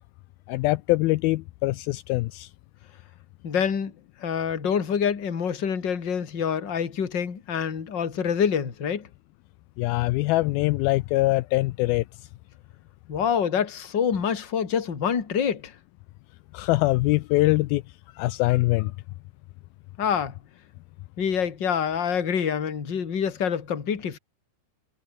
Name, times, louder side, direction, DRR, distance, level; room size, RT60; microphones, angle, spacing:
voice 1, 0.5-2.5 9.8-12.0 16.5-17.8 18.2-18.9, left 19 dB, 90° left, 2.1 m, -23 dB
voice 2, 3.4-3.9 4.2-9.1 13.1-15.7 20.0-20.3 21.2-24.2, left 7 dB, 35° left, 2.3 m, -26 dB
omnidirectional pair, 5.0 m